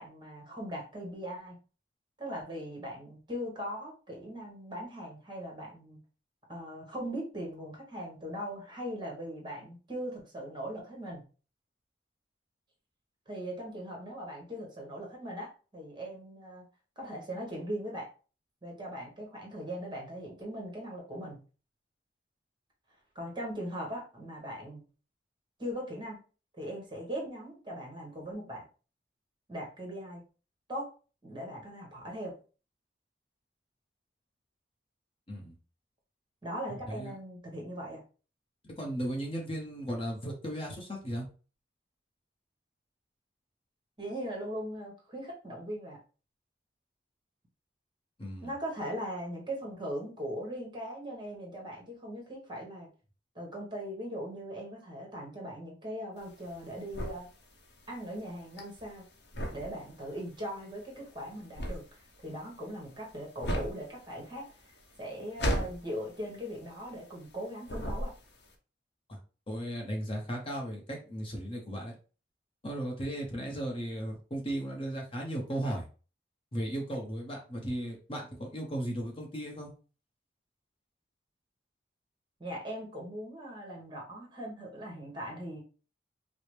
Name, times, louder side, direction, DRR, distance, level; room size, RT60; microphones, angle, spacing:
voice 1, 0.0-1.6 2.2-6.0 6.5-11.2 13.3-16.6 17.0-18.1 18.6-21.4 23.1-24.8 25.6-26.2 26.6-28.6 29.5-30.2 30.7-30.9 31.2-32.3 36.4-38.0 44.0-46.0 48.4-52.9 53.3-57.3 57.9-59.0 59.5-68.1 82.4-85.6, equal, 25° right, -1 dB, 1.1 m, -40 dB
voice 2, 36.7-37.2 38.6-41.3 48.2-48.5 69.1-69.2 69.5-71.9 72.6-75.8 76.5-79.7, right 1 dB, 30° left, 0 dB, 0.8 m, -36 dB
sound 1, 56.2-67.4 67.6-68.5, equal, 65° left, 0.8 m, -36 dB
4.8 x 2.0 x 3.1 m, 0.36 s
head